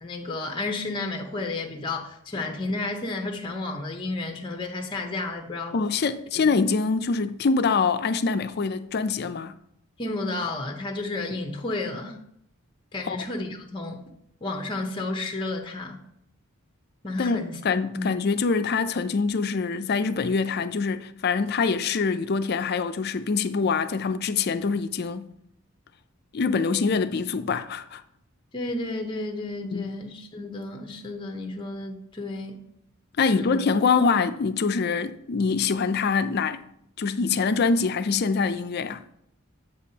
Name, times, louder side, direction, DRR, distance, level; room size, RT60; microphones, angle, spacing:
voice 1, 0.0-5.8 10.0-12.2 12.9-14.0 14.4-16.0 17.0-17.5 17.9-18.1 28.5-32.6 33.2-33.6, left 2 dB, 20° left, 0.7 m, -32 dB
voice 2, 5.7-9.6 13.0-13.2 17.2-25.3 26.3-28.0 29.7-29.9 33.2-36.6 37.0-39.0, left 4 dB, 45° left, 0.4 m, -24 dB
8.1 x 7.1 x 2.8 m
head